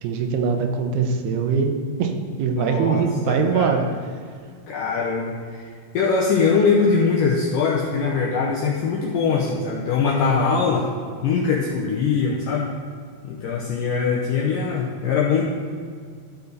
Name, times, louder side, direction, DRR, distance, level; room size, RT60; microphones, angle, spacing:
voice 1, 0.0-3.9, right 5 dB, 80° right, 5 dB, 2.6 m, -22 dB
voice 2, 2.5-3.8 4.7-5.7 5.9-10.9 11.2-12.7 13.2-15.4, left 5 dB, 80° left, -2 dB, 1.9 m, -22 dB
13.0 x 5.7 x 3.9 m, 2.1 s
omnidirectional pair, 4.7 m